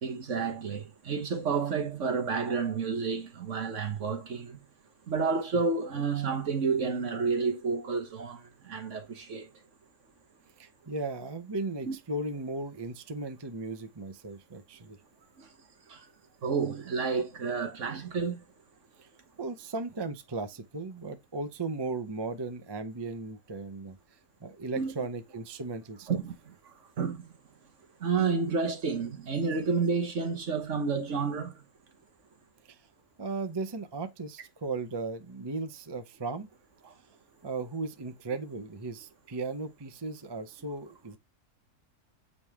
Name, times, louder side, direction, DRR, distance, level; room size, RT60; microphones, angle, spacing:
voice 1, 0.0-4.6 5.1-9.5 11.9-12.0 15.4-15.5 15.9-16.0 16.4-18.4 24.7-24.9 26.1-27.3 28.0-31.6 36.8-36.9, right 5 dB, 55° right, 1.4 m, -30 dB
voice 2, 10.6-15.0 19.4-24.0 24.4-26.1 32.7-32.9 33.2-36.5 37.4-41.2, right 3 dB, 25° right, 0.6 m, -36 dB
8.5 x 3.4 x 3.5 m
omnidirectional pair, 1.6 m